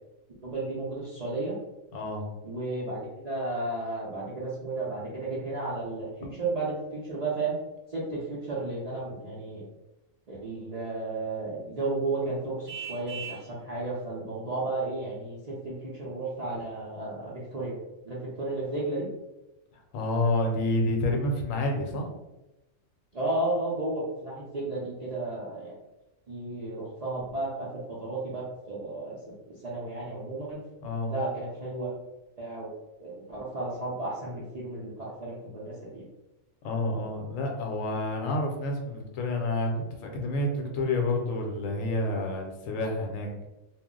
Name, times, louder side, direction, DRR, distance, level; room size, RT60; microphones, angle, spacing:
voice 1, 0.4-1.5 2.4-6.1 6.4-7.5 7.9-9.6 10.3-17.8 18.0-19.1 23.1-25.7 26.3-27.7 28.0-29.2 29.6-30.6 31.1-32.1 32.4-32.7 33.0-36.1, right 2 dB, 55° right, -7 dB, 0.4 m, -33 dB
voice 2, 1.9-2.3 19.7-22.1 30.8-31.1 36.6-43.5, left 1 dB, 80° left, 2 dB, 1.0 m, -29 dB
Vehicle horn car horn honking, 12.7-13.5, right 8 dB, 70° right, 0.9 m, -38 dB
2.3 x 2.0 x 3.6 m, 0.99 s
omnidirectional pair, 1.4 m